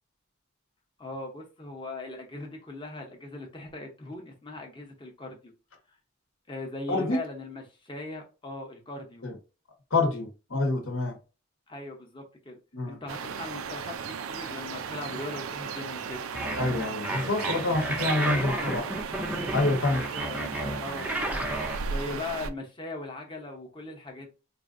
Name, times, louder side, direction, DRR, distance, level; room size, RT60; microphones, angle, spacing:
voice 1, 1.0-5.5 6.5-9.2 11.7-12.6 12.8-16.2 20.0-24.3, left 2 dB, 25° left, 0.8 m, -40 dB
voice 2, 9.9-11.1 12.7-13.0 16.5-18.9 19.5-20.0, left 2 dB, 75° left, 1.1 m, -27 dB
sound 1, 13.1-22.5, right 6 dB, 80° right, 0.4 m, -36 dB
sound 2, 16.3-21.8, right 1 dB, 5° right, 0.4 m, -32 dB
4.3 x 2.6 x 2.5 m
head